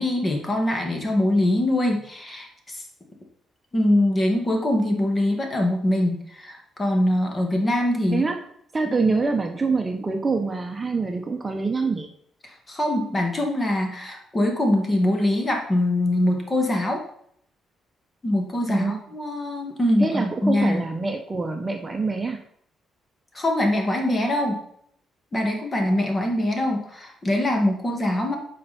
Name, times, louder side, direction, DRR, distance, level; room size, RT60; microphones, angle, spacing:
voice 1, 0.0-2.8 3.7-8.3 8.9-9.0 12.7-17.0 18.2-20.8 23.3-24.6 25.3-28.3, left 1 dB, 25° left, 2 dB, 2.2 m, -23 dB
voice 2, 8.7-12.1 18.7-19.0 20.0-22.4, right 4 dB, 25° right, 4 dB, 1.0 m, -25 dB
9.4 x 5.7 x 4.4 m, 0.66 s
cardioid pair, 90°, 0 cm